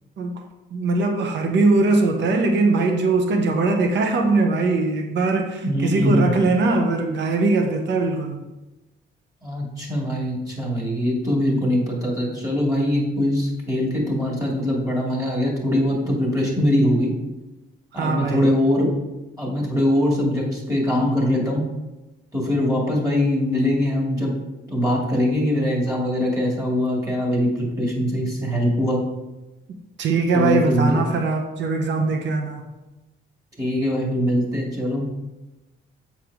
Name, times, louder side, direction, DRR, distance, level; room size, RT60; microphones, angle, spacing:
voice 1, 0.7-8.4 17.9-18.4 30.0-32.6, right 3 dB, 65° right, 4 dB, 0.9 m, -21 dB
voice 2, 5.6-6.3 9.4-17.1 17.9-18.9 19.4-21.6 22.3-24.3 24.7-29.0 30.3-31.0 33.6-35.2, left 1 dB, 15° right, -2 dB, 2.3 m, -22 dB
7.2 x 4.5 x 3.6 m, 1.0 s
cardioid pair, 90°, 20 cm